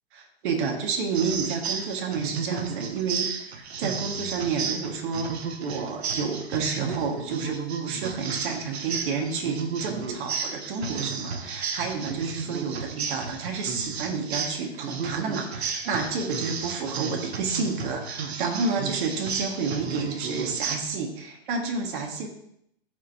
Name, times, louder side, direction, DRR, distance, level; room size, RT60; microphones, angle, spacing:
voice 1, 0.1-5.3 5.6-22.3, right 5 dB, 55° right, 1 dB, 1.8 m, -30 dB
sound 1, 1.1-20.8, right 5 dB, 85° right, 1.1 m, -33 dB
14.0 x 5.2 x 2.8 m, 0.73 s
hypercardioid pair, 135°, 31 cm